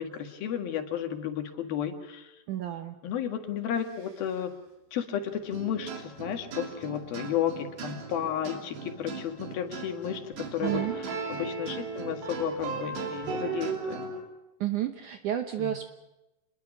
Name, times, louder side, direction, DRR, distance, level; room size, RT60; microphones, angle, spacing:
voice 1, 0.0-2.3 3.0-4.5 4.9-10.8 11.3-14.0 15.6-15.7, left 9 dB, 65° left, 6 dB, 3.5 m, -33 dB
voice 2, 2.5-3.0 10.6-11.0 14.6-15.9, right 11 dB, 70° right, 7 dB, 2.0 m, -31 dB
sound 1, 5.5-14.2, right 4 dB, 85° right, 5.4 m, -36 dB
27.0 x 21.0 x 6.1 m, 0.99 s
omnidirectional pair, 4.7 m